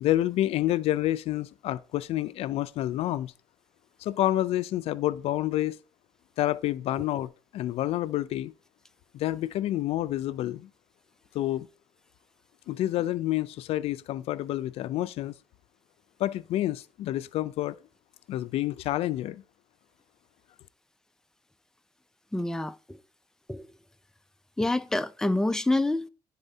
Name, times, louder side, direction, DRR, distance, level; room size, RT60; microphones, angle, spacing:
voice 1, 0.0-3.3 4.0-5.8 6.4-8.5 9.1-10.7 11.3-11.7 12.7-15.3 16.2-17.8 18.3-19.4, left 14 dB, 80° left, 0.4 m, -28 dB
voice 2, 22.3-23.0 23.5-23.7 24.6-26.1, left 2 dB, 5° left, 0.4 m, -27 dB
11.0 x 4.1 x 2.7 m
cardioid pair, 85°, 10 cm